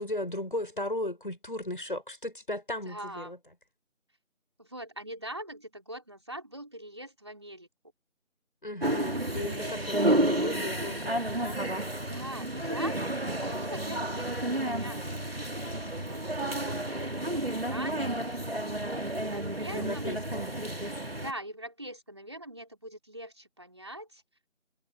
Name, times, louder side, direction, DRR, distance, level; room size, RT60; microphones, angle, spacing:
voice 1, 0.0-3.4 8.6-11.6 19.7-20.5, left 1 dB, 40° left, 7.0 m, -36 dB
voice 2, 2.8-3.3 4.6-7.7 9.3-10.2 11.5-11.7 12.0-15.0 15.2-18.4 19.2-20.2 21.2-24.2, right 1 dB, 20° right, 5.1 m, -43 dB
sound 1, 8.8-21.3, right 1 dB, 50° right, 2.6 m, -31 dB
figure-of-eight pair, 180°, 39 cm